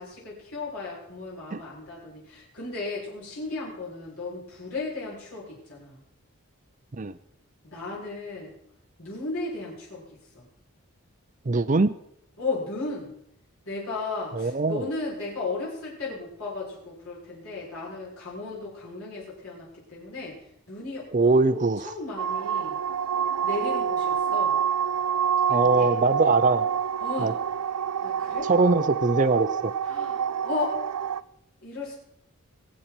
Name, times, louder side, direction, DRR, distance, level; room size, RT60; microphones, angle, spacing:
voice 1, 0.0-6.0 7.6-8.5 9.0-10.0 10.3-10.5 12.4-13.1 13.7-20.4 20.7-21.6 21.8-22.8 23.4-24.6 25.5-25.9 27.0-27.3 28.0-28.5 29.8-30.8 31.6-31.9, left 3 dB, 70° left, -6 dB, 6.9 m, -35 dB
voice 2, 11.5-12.0 14.3-14.9 21.1-21.9 25.5-26.7 27.2-27.3 28.5-29.7, right 3 dB, 35° right, 11 dB, 0.5 m, -22 dB
sound 1, 22.2-31.2, right 8 dB, 90° right, 0.4 m, -27 dB
24.5 x 8.3 x 4.5 m, 0.75 s
head